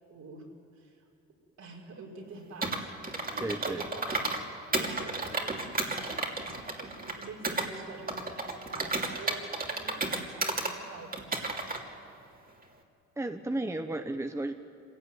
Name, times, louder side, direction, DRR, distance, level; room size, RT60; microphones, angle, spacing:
voice 1, 0.1-0.5 0.7-1.0 1.6-11.6, right 3 dB, 65° right, -1 dB, 5.1 m, -47 dB
Computer keyboard, 2.6-4.4 4.7-7.7 8.1-10.7 11.1-11.8, right 2 dB, 30° right, 2.8 m, -32 dB
voice 2, 3.4-3.8 13.2-14.5, right 2 dB, 10° right, 7 dB, 1.0 m, -33 dB
26.0 x 16.5 x 9.5 m, 2.5 s
cardioid pair, 90°, 30 cm